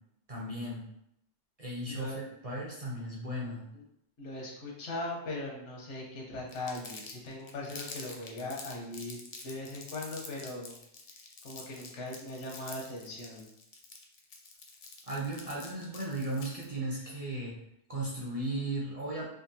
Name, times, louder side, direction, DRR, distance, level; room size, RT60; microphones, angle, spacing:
voice 1, 0.3-0.8 1.6-3.6 15.1-17.5 17.9-19.2, right 1 dB, 40° right, -4 dB, 0.6 m, -36 dB
voice 2, 1.9-2.2 3.7-3.8 4.2-9.2 9.4-10.8 11.4-13.5, left 2 dB, 85° left, -2 dB, 1.2 m, -39 dB
Crumpling crinkling, 6.5-16.7, left 4 dB, 55° left, 0.6 m, -47 dB
3.5 x 2.3 x 2.7 m, 0.79 s
omnidirectional pair, 1.2 m